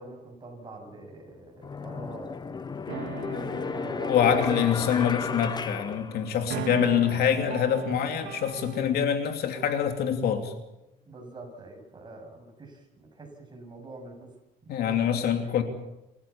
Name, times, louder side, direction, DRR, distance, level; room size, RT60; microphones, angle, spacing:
voice 1, 0.0-3.2 3.5-5.0 6.4-6.8 11.1-14.3 14.6-15.6, right 2 dB, 25° right, 2 dB, 7.8 m, -45 dB
sound 1, 0.9-1.0 1.6-6.8, left 5 dB, 25° left, 0.7 m, -34 dB
sound 2, 2.9-9.1, right 8 dB, 75° right, 1.8 m, -39 dB
voice 2, 4.1-10.5 14.7-15.6, left 8 dB, 70° left, 5 dB, 2.9 m, -25 dB
29.0 x 15.5 x 7.3 m, 0.95 s
cardioid pair, 110°, 17 cm